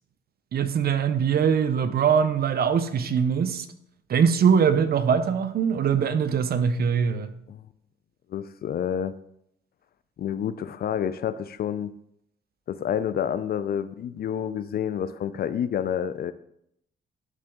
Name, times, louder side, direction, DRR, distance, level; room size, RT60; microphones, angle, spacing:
voice 1, 0.5-3.7 4.1-7.3, right 7 dB, 50° right, 0.6 m, -22 dB
voice 2, 8.3-9.1 10.2-11.9 12.7-16.3, left 9 dB, 50° left, 0.4 m, -29 dB
11.0 x 3.9 x 3.5 m
cardioid pair, 90°, 20 cm